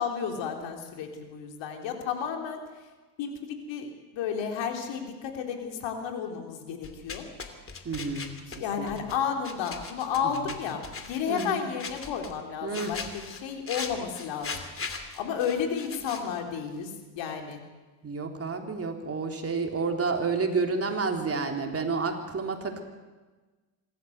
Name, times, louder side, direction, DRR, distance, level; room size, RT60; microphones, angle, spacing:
voice 1, 0.0-2.6 3.2-3.3 3.7-7.2 8.5-14.6 15.1-17.6, left 7 dB, 65° left, 3 dB, 3.7 m, -32 dB
sound 1, 6.8-9.2 9.4-11.5 11.8-12.4 12.7-16.4, left 4 dB, 25° left, 2.7 m, -39 dB
voice 2, 7.8-8.3 8.8-9.1 11.3-11.7 12.6-12.9 18.0-22.8, right 4 dB, 30° right, 4 dB, 3.3 m, -30 dB
25.0 x 13.5 x 8.1 m, 1.3 s
supercardioid pair, 80°, 47 cm